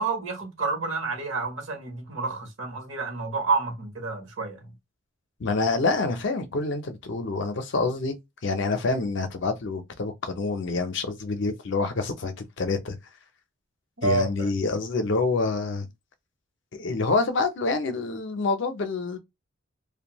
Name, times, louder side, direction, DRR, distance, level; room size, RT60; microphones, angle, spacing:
voice 1, 0.0-4.6 14.0-14.5, right 3 dB, 65° right, 0.9 m, -29 dB
voice 2, 5.4-13.0 14.0-15.9 16.7-19.2, left 3 dB, 60° left, 0.5 m, -27 dB
2.5 x 2.2 x 2.9 m
head